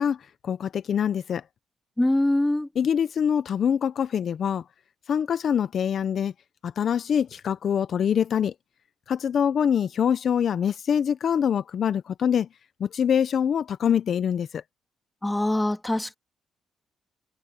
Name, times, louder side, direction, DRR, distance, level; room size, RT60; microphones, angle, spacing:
voice 1, 0.0-1.4 2.8-4.6 5.1-6.3 6.6-8.5 9.1-12.5 12.8-14.6, left 8 dB, 60° left, 0.7 m, -24 dB
voice 2, 2.0-2.7 15.2-16.2, left 1 dB, 10° left, 2.1 m, -23 dB
cardioid pair, 80°, 0 cm